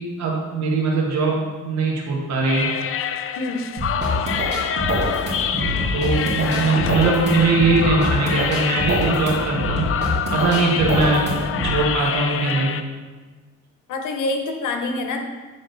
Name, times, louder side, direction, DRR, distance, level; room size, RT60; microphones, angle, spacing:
voice 1, 0.0-2.7 5.9-9.9 10.3-11.4 11.6-12.7, right 3 dB, 65° right, -2 dB, 1.2 m, -21 dB
sound 1, 2.5-12.8, left 8 dB, 45° left, 0.4 m, -26 dB
sound 2, 3.8-11.8, equal, 35° right, 2.0 m, -25 dB
voice 2, 13.9-15.2, left 2 dB, 85° left, 4 dB, 0.9 m, -25 dB
7.9 x 3.7 x 3.9 m, 1.3 s
cardioid pair, 90°, 30 cm